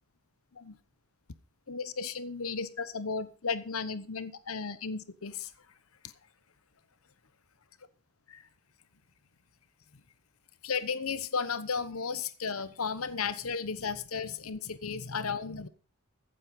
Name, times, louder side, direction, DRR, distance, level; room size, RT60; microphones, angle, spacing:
voice 1, 1.7-5.5 8.3-8.4 10.6-15.7, left 5 dB, 80° left, 14 dB, 1.0 m, -34 dB
15.0 x 7.7 x 5.4 m, 0.38 s
head